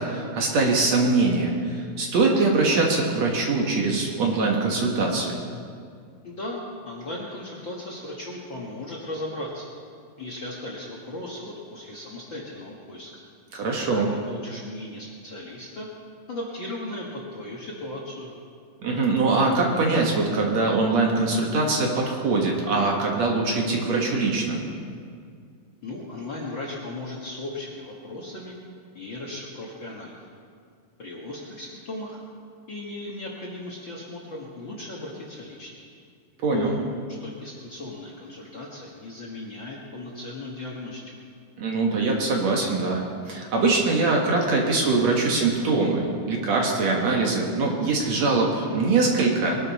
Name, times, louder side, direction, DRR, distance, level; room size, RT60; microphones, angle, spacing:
voice 1, 0.0-5.4 13.5-14.1 18.8-24.6 36.4-36.8 41.6-49.6, right 3 dB, 55° right, 0 dB, 2.5 m, -23 dB
voice 2, 6.2-9.7 10.2-13.1 13.9-15.9 16.3-18.3 25.8-28.5 28.9-30.2 31.0-32.2 32.7-35.7 36.5-36.8 37.2-41.0, left 1 dB, 50° left, -3 dB, 1.6 m, -36 dB
22.0 x 12.0 x 4.2 m, 2.2 s
omnidirectional pair, 4.0 m